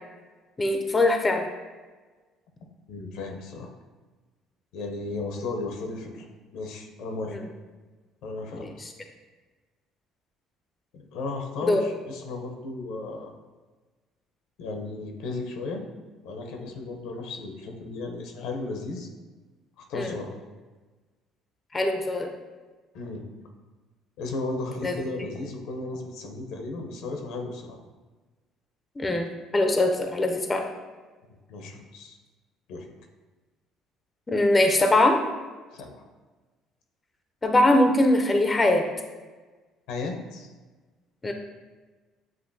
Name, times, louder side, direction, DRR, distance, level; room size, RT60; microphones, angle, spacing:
voice 1, 0.6-1.5 7.3-7.5 8.6-8.7 11.6-11.8 19.9-20.1 21.7-22.3 24.8-24.9 29.0-30.6 34.3-35.2 37.4-38.8 41.2-41.3, left 1 dB, 20° left, 4 dB, 0.5 m, -22 dB
voice 2, 2.9-3.7 4.7-6.2 6.5-7.4 8.2-8.9 10.9-13.3 14.6-15.8 16.2-19.1 19.9-20.3 22.9-23.2 24.2-27.8 31.5-32.2 32.7-32.9 35.7-35.9 39.9-40.5, left 3 dB, 80° left, 3 dB, 0.7 m, -35 dB
7.5 x 2.6 x 2.7 m, 1.3 s
cardioid pair, 105°, 0 cm